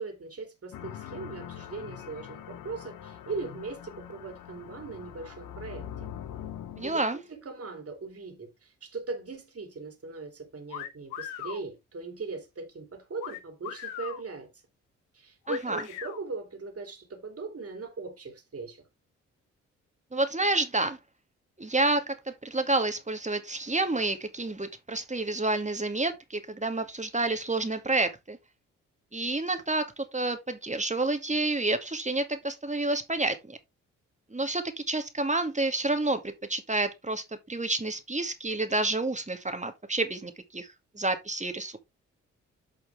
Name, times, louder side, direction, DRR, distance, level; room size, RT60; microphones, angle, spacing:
voice 1, 0.0-6.1 6.8-14.5 15.1-18.8, right 3 dB, 45° right, 3.2 m, -39 dB
sound 1, 0.7-7.0, left 10 dB, 70° left, 1.1 m, -43 dB
voice 2, 6.8-7.2 15.5-15.8 20.1-21.0 21.6-28.4 29.1-33.6 34.3-40.7 40.9-41.8, right 2 dB, 20° right, 2.4 m, -29 dB
sound 2, 10.7-11.6 13.2-14.2 15.5-16.2, left 9 dB, 90° left, 1.1 m, -38 dB
9.4 x 5.6 x 3.5 m
hypercardioid pair, 40°, 34 cm